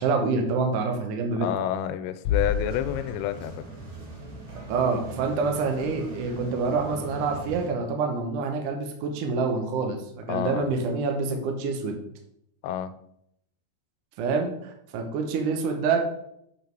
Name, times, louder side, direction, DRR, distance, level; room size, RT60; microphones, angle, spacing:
voice 1, 0.0-1.5 4.7-12.0 14.2-16.0, right 4 dB, 75° right, 3 dB, 1.9 m, -27 dB
voice 2, 1.4-3.6 10.3-10.7 12.6-12.9, left 10 dB, 85° left, 12 dB, 2.8 m, -29 dB
sound 1, 2.2-3.7, left 7 dB, 70° left, 2.0 m, -29 dB
sound 2, 2.3-7.7, right 1 dB, 45° right, 1.6 m, -40 dB
8.0 x 5.1 x 4.6 m, 0.74 s
omnidirectional pair, 5.1 m